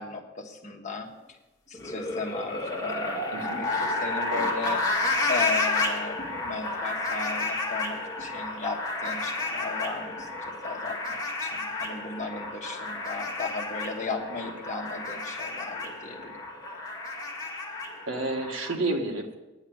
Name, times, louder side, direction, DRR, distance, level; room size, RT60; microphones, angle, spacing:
voice 1, 0.0-1.4 1.7-4.8 5.3-16.4, left 4 dB, 35° left, 2 dB, 1.4 m, -36 dB
sound 1, 1.7-18.7, left 2 dB, 20° left, 1.9 m, -31 dB
voice 2, 3.3-3.6 4.3-4.5 18.1-19.4, right 2 dB, 75° right, 3 dB, 1.5 m, -30 dB
10.0 x 7.2 x 9.2 m, 1.1 s
head